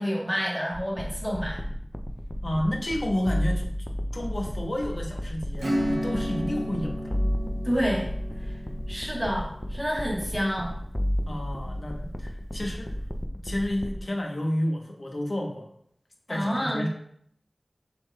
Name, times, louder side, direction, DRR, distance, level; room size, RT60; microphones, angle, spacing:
voice 1, 0.0-1.6 7.6-8.1 8.5-8.6 8.9-10.7 16.3-16.9, equal, ahead, -4 dB, 1.6 m, -28 dB
sound 1, 0.7-14.0, equal, 20° left, 0.4 m, -32 dB
voice 2, 2.4-3.6 4.1-7.1 11.3-12.9 13.4-15.7 16.3-16.9, left 1 dB, 65° left, 1 dB, 0.9 m, -30 dB
Acoustic guitar / Strum, 5.6-11.8, equal, 85° right, 0.9 m, -34 dB
6.0 x 3.7 x 2.2 m, 0.68 s
wide cardioid pair, 45°, 0 cm